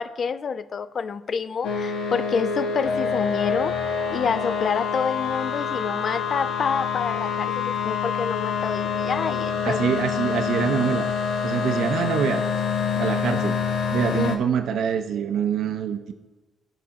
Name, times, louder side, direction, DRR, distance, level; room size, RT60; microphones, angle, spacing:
voice 1, 0.0-3.8 4.1-10.0 14.1-14.3, left 6 dB, 50° left, 14 dB, 0.3 m, -28 dB
sound 1, 1.6-14.4, left 6 dB, 75° left, 0.8 m, -26 dB
voice 2, 9.6-11.1 11.4-12.4 13.0-13.6 13.9-16.1, right 7 dB, 70° right, 7 dB, 0.5 m, -25 dB
12.5 x 4.1 x 2.8 m, 1.2 s
cardioid pair, 90°, 0 cm